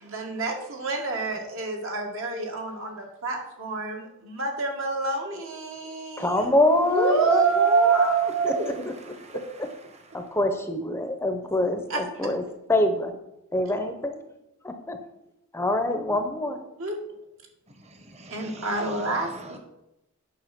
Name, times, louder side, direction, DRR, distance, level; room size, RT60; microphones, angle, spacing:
voice 1, 0.0-6.5 6.9-8.8 9.3-9.4 11.9-12.0 16.5-17.0 18.3-19.6, right 4 dB, 65° right, 2.0 m, -27 dB
voice 2, 6.2-8.5 10.1-12.4 12.7-13.1 13.5-14.2 14.6-15.0 15.5-16.6, left 1 dB, 10° left, 0.7 m, -25 dB
voice 3, 8.4-10.2 17.8-19.6, right 2 dB, 30° right, 1.2 m, -46 dB
9.1 x 6.0 x 6.0 m
head